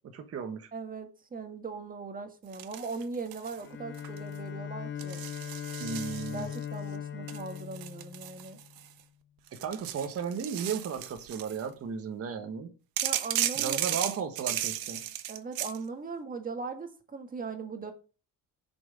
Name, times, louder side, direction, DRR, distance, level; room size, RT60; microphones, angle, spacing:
voice 1, 0.1-0.7 5.8-6.5 9.5-12.7 13.5-15.0, right 6 dB, 40° right, 1.5 m, -35 dB
voice 2, 0.7-5.2 6.3-8.6 13.0-14.0 15.3-17.9, right 4 dB, 25° right, 1.8 m, -39 dB
sound 1, 2.5-3.6 3.9-4.4 5.0-6.6 7.3-9.0 9.5-11.6 13.0-15.8, right 12 dB, 80° right, 1.3 m, -35 dB
Bowed string instrument, 3.6-8.8, left 9 dB, 35° left, 0.9 m, -40 dB
10.5 x 6.2 x 7.5 m
cardioid pair, 180°, 36 cm